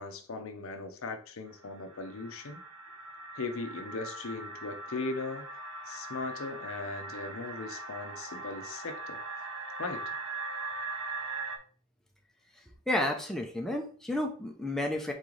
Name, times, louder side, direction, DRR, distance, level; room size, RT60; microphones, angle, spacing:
voice 1, 0.0-2.6 3.4-5.4 5.9-9.2 9.8-10.1, left 3 dB, 70° left, 7 dB, 0.6 m, -38 dB
sound 1, 1.5-11.6, right 2 dB, 75° right, 0.6 m, -40 dB
voice 2, 12.5-15.1, left 1 dB, ahead, 1 dB, 0.5 m, -32 dB
4.0 x 3.1 x 3.8 m, 0.42 s
head